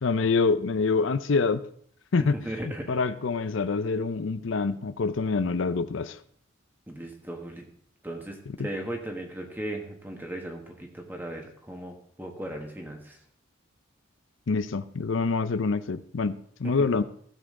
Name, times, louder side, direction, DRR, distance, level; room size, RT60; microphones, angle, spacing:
voice 1, 0.0-1.6 2.1-2.4 2.6-6.2 8.6-8.7 14.5-17.0, left 4 dB, 70° left, 13 dB, 0.5 m, -26 dB
voice 2, 2.4-2.9 6.9-7.6 8.0-13.2, right 1 dB, 10° right, 2 dB, 1.3 m, -37 dB
15.5 x 7.4 x 3.7 m, 0.62 s
head